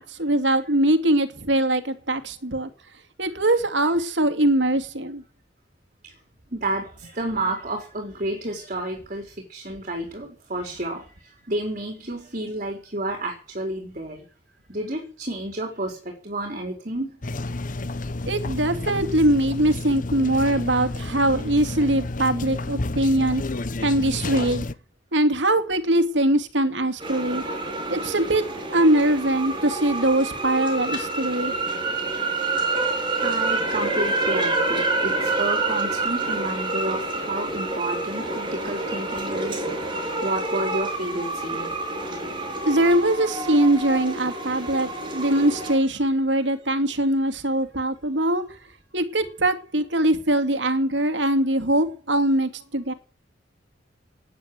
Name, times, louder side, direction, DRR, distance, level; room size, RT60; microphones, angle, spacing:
voice 1, 0.0-2.7 3.2-5.2 18.3-23.4 23.8-24.6 25.1-27.4 27.9-28.4 28.7-31.5 42.7-48.5 48.9-52.9, right 1 dB, 80° right, 2.5 m, -22 dB
voice 2, 6.5-14.2 14.7-17.2 33.2-39.7 40.2-41.7, right 1 dB, 45° right, 4.7 m, -30 dB
sound 1, 17.2-24.7, left 2 dB, 45° left, 1.0 m, -30 dB
sound 2, 27.0-45.7, right 2 dB, 30° right, 7.0 m, -28 dB
18.5 x 10.0 x 7.8 m
head